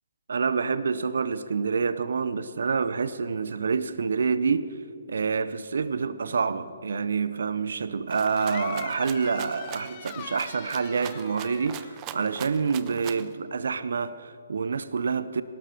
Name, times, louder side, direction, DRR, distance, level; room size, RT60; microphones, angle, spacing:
voice 1, 0.3-4.8 5.1-15.4, right 5 dB, 70° right, 0.6 m, -27 dB
Rattle (instrument), 8.1-13.3, right 13 dB, 25° right, 0.6 m, -42 dB
sound 1, 8.4-12.7, left 12 dB, 35° left, 0.5 m, -43 dB
19.0 x 12.0 x 5.1 m
hypercardioid pair, 145°, 0 cm